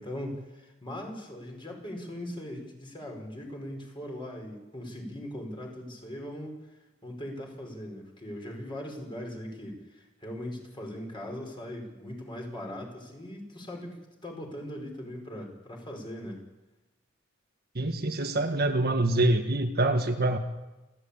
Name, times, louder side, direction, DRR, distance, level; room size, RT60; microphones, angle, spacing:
voice 1, 0.0-6.6 7.0-16.4, left 1 dB, 25° left, 1 dB, 5.3 m, -40 dB
voice 2, 17.7-20.4, right 2 dB, 50° right, 5 dB, 1.5 m, -25 dB
29.0 x 12.5 x 8.7 m, 1.1 s
head